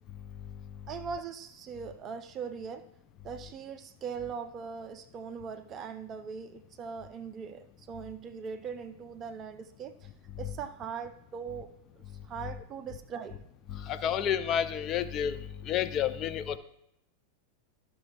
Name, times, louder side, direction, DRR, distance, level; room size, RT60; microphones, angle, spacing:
voice 1, 0.9-2.8 3.2-9.9 10.4-11.7 12.3-13.4, right 6 dB, 30° right, 8 dB, 0.5 m, -40 dB
voice 2, 14.0-15.3 15.7-16.6, left 9 dB, 35° left, 12 dB, 0.5 m, -29 dB
12.5 x 6.0 x 2.5 m, 0.79 s
figure-of-eight pair, 90°, 0 cm